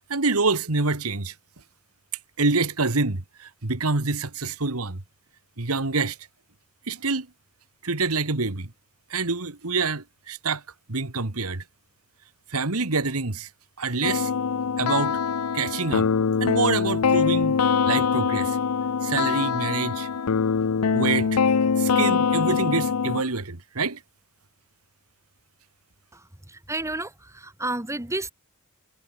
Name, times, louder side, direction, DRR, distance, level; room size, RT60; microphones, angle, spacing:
voice 1, 0.1-1.3 2.4-5.0 5.6-6.2 6.9-7.3 7.8-8.7 9.1-10.6 10.9-11.6 12.5-13.5 13.8-14.3 14.8-15.2 15.5-16.1 16.4-17.6 17.9-18.6 19.0-20.1 20.9-21.4 21.8-24.0, right 3 dB, 75° right, 1.9 m, -26 dB
sound 1, 14.0-23.2, left 6 dB, 90° left, 0.6 m, -23 dB
voice 2, 26.1-28.3, right 2 dB, 15° right, 1.7 m, -32 dB
head